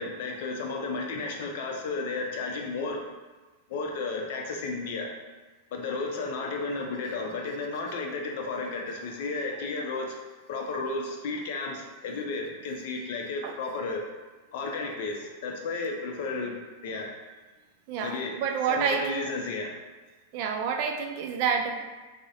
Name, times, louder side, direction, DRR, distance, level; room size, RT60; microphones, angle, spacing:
voice 1, 0.0-3.0 3.7-5.1 5.7-10.2 10.5-14.0 14.5-16.6 16.8-17.1 18.0-18.4 18.7-19.7, left 3 dB, 65° left, 1 dB, 0.4 m, -33 dB
voice 2, 17.9-19.3 20.3-21.8, right 6 dB, 55° right, 4 dB, 0.3 m, -28 dB
2.4 x 2.0 x 2.7 m, 1.3 s
hypercardioid pair, 125°, 0 cm